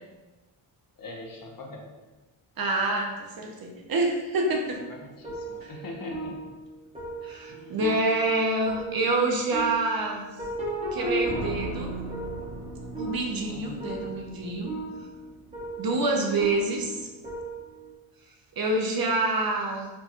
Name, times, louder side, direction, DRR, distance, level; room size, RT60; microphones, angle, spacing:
voice 1, 1.0-1.9 4.9-6.5 7.5-7.8 13.5-14.2, left 2 dB, 45° left, 0 dB, 0.7 m, -42 dB
voice 2, 2.6-4.8 7.2-10.2 10.9-11.9 13.0-14.7 15.8-17.1 18.6-19.9, right 2 dB, 50° right, 1 dB, 0.6 m, -27 dB
sound 1, 4.7-17.9, right 2 dB, 15° right, 0.9 m, -36 dB
4.3 x 2.2 x 2.9 m, 1.1 s
cardioid pair, 105°, 48 cm